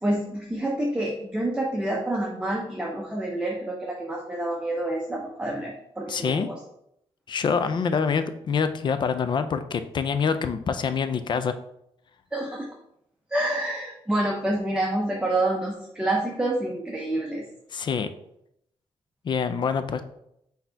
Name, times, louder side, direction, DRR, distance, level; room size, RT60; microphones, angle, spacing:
voice 1, 0.0-6.6 12.3-12.7 13.3-17.4, right 1 dB, 10° right, -1 dB, 0.6 m, -28 dB
voice 2, 6.1-6.5 7.3-11.6 17.7-18.1 19.2-20.0, left 6 dB, 45° left, 10 dB, 0.4 m, -26 dB
4.1 x 2.7 x 4.5 m, 0.77 s
wide cardioid pair, 130°, 11 cm